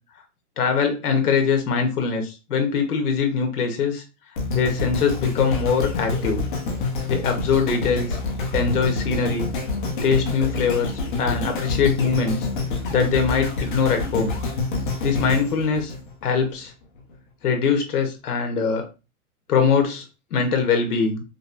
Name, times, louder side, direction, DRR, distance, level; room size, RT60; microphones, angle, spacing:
voice 1, 0.6-4.0 4.5-6.4 7.1-8.2 8.5-9.5 10.0-10.9 11.2-12.5 12.9-14.4 15.0-15.9 16.2-16.7 17.4-18.9 19.5-20.1 20.3-21.2, left 5 dB, 85° left, 5 dB, 1.1 m, -22 dB
sound 1, 4.4-16.6 17.1-17.2, left 3 dB, 35° left, 0.8 m, -27 dB
5.1 x 2.0 x 2.5 m, 0.30 s
hypercardioid pair, 170°, 44 cm